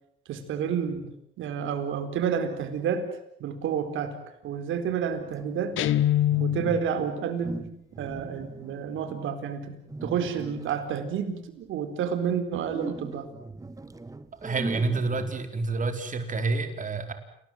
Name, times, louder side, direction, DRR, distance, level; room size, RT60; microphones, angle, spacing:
voice 1, 0.3-3.1 3.4-4.2 4.4-5.8 6.4-7.6 8.0-13.3, right 7 dB, 80° right, 8 dB, 4.3 m, -30 dB
sound 1, 5.0-7.0 7.4-9.3 9.9-11.0 12.7-15.7, right 3 dB, 15° right, 1.6 m, -40 dB
Guitar, 5.8-6.9, left 12 dB, 80° left, 1.2 m, -24 dB
voice 2, 14.4-17.1, right 3 dB, 40° right, 7 dB, 4.5 m, -28 dB
29.0 x 19.5 x 7.8 m, 0.75 s
cardioid pair, 90°, 20 cm